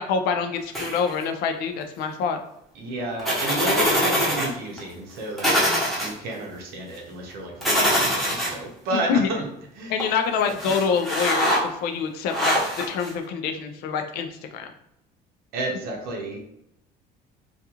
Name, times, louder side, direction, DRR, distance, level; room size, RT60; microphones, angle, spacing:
voice 1, 0.0-2.4 8.9-9.3 9.9-11.5 11.8-12.6 12.9-14.7, left 6 dB, 75° left, 6 dB, 0.4 m, -26 dB
sound 1, 0.7-1.2 3.2-4.5 4.8-4.9 5.4-6.1 7.6-8.5 10.0-10.1 10.5-11.6 12.3-13.1, equal, ahead, 0.9 m, -23 dB
voice 2, 2.8-5.6 6.0-9.5 9.8-9.9 15.5-16.4, right 2 dB, 70° right, 1 dB, 0.7 m, -31 dB
2.4 x 2.3 x 2.9 m, 0.79 s
cardioid pair, 130°, 17 cm